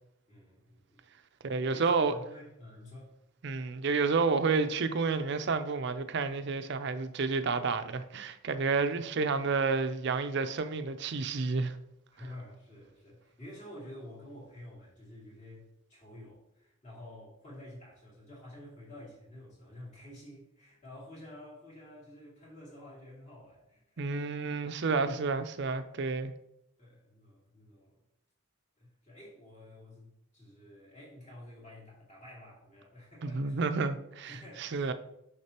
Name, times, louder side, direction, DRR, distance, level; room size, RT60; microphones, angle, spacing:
voice 1, 0.3-1.0 1.7-3.1 12.1-24.3 26.8-28.0 28.8-33.6 34.2-34.9, left 1 dB, 35° left, 2.5 m, -50 dB
voice 2, 1.4-2.1 3.4-11.8 24.0-26.3 33.3-34.9, right 4 dB, 50° right, 0.5 m, -30 dB
6.3 x 5.9 x 2.9 m
head